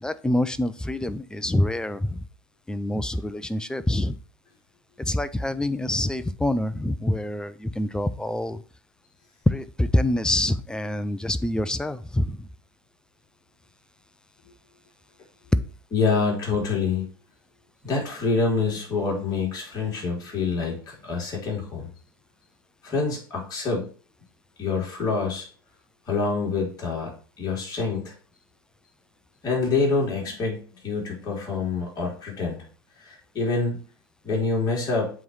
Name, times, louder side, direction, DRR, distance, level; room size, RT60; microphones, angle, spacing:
voice 1, 0.0-2.2 2.7-4.2 5.0-8.6 9.5-12.5, left 1 dB, 5° left, 14 dB, 0.5 m, -26 dB
voice 2, 15.9-17.0 17.8-21.9 22.8-23.8 24.6-25.5 26.1-27.1 27.4-28.1 29.4-32.6 33.0-33.8 34.2-35.1, left 4 dB, 35° left, -3 dB, 3.3 m, -26 dB
7.6 x 3.2 x 5.5 m, 0.40 s
hypercardioid pair, 85°, 11 cm